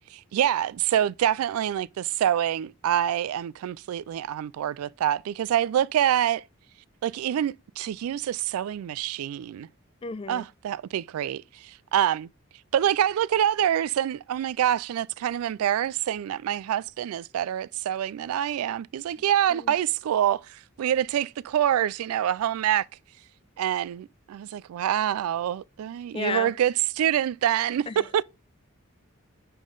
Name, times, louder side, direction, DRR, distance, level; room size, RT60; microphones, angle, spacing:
voice 1, 0.1-6.4 7.0-9.7 10.3-12.3 12.7-22.9 23.6-28.2, right 10 dB, 90° right, 0.3 m, -26 dB
voice 2, 10.0-10.5 19.5-19.7 26.1-26.5 27.9-28.1, left 5 dB, 25° left, 0.3 m, -33 dB
9.9 x 3.7 x 3.8 m
head